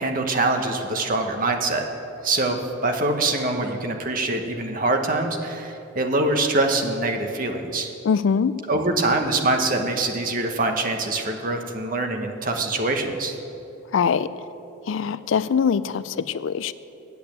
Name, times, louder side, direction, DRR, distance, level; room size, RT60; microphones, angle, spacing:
voice 1, 0.0-1.8 2.2-7.9 8.7-13.3, right 2 dB, 45° right, 4 dB, 1.0 m, -24 dB
voice 2, 8.0-8.5 13.9-14.3 14.9-16.7, left 6 dB, 70° left, 16 dB, 0.4 m, -22 dB
8.7 x 8.3 x 8.4 m, 2.9 s
head